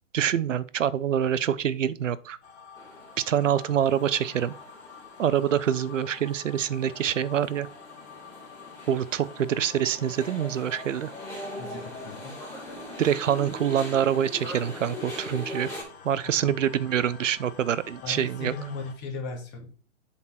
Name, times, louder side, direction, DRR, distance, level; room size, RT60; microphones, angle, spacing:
voice 1, 0.1-2.4 3.3-4.5 5.2-7.7 8.9-11.1 13.0-15.7 16.0-18.5, right 9 dB, 85° right, 0.6 m, -25 dB
sound 1, 2.4-18.9, left 5 dB, 60° left, 2.1 m, -48 dB
sound 2, 2.8-15.8, left 1 dB, 5° left, 2.7 m, -42 dB
voice 2, 11.6-12.4 16.2-16.5 18.0-19.7, left 3 dB, 30° left, 1.9 m, -37 dB
7.6 x 4.3 x 4.3 m
hypercardioid pair, 125°, 37 cm